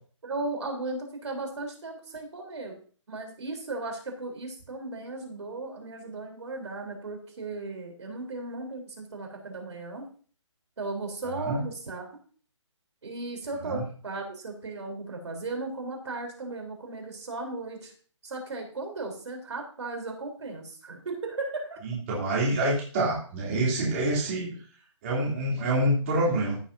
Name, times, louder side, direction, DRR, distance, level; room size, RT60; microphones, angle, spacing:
voice 1, 0.2-2.8 3.1-10.0 10.8-12.0 13.0-17.9 18.2-21.8, right 3 dB, 65° right, 2 dB, 3.7 m, -36 dB
voice 2, 21.8-24.5 25.0-26.6, right 1 dB, 25° right, -4 dB, 3.1 m, -26 dB
16.0 x 7.3 x 2.7 m, 0.43 s
hypercardioid pair, 165°, 16 cm